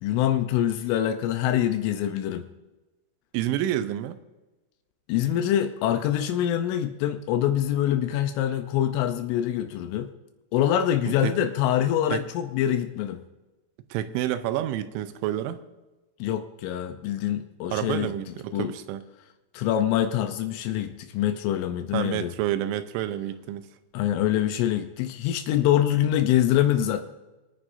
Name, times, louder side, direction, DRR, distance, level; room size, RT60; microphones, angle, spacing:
voice 1, 0.0-2.4 5.1-10.1 10.5-13.2 16.2-18.1 18.5-18.7 19.5-22.3 23.9-27.0, left 11 dB, 85° left, 7 dB, 3.2 m, -25 dB
voice 2, 3.3-4.2 11.1-11.3 12.1-12.2 13.9-15.6 17.7-19.0 21.9-23.7, right 12 dB, 85° right, 11 dB, 3.0 m, -29 dB
24.5 x 9.6 x 2.6 m, 1.1 s
omnidirectional pair, 5.6 m